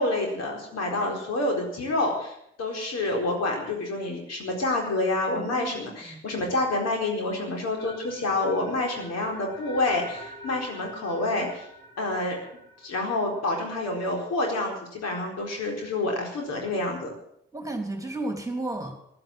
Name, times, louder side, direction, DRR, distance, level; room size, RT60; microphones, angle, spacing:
voice 1, 0.0-11.7 12.0-12.4 12.8-17.1, left 2 dB, 55° left, 1 dB, 4.3 m, -28 dB
voice 2, 5.3-5.7 6.1-6.2 17.5-18.9, right 2 dB, 10° right, 4 dB, 3.3 m, -32 dB
sound 1, 7.8-13.9, left 1 dB, 75° left, 4.3 m, -45 dB
15.5 x 11.0 x 7.6 m, 0.72 s
figure-of-eight pair, 40°, 31 cm